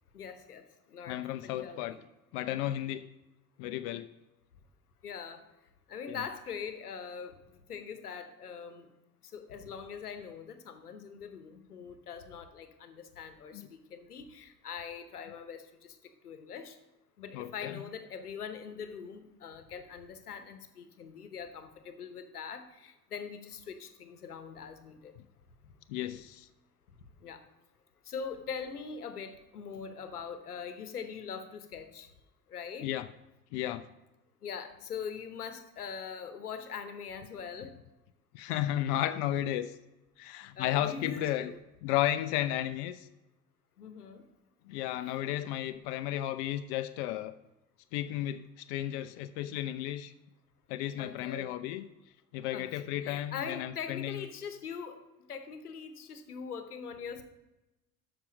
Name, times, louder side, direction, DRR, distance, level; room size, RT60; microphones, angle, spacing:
voice 1, 0.1-2.0 5.0-5.5 5.9-7.4 7.7-8.9 9.3-16.0 16.2-16.8 17.2-25.2 25.6-25.7 27.2-27.4 28.0-32.1 32.5-32.9 34.4-37.7 40.6-41.6 43.8-44.2 51.0-51.5 52.5-55.0 55.3-57.2, left 6 dB, 80° left, 10 dB, 1.0 m, -42 dB
voice 2, 1.1-2.0 2.3-3.1 3.6-4.1 6.1-6.2 13.5-13.7 17.3-17.8 25.9-26.5 32.8-33.1 33.5-33.8 38.3-39.8 40.2-41.5 41.8-43.1 44.7-47.3 47.9-50.1 50.7-51.9 52.3-54.2, left 13 dB, 50° left, 11 dB, 0.5 m, -33 dB
13.0 x 5.0 x 5.1 m, 0.99 s
figure-of-eight pair, 60°, 45 cm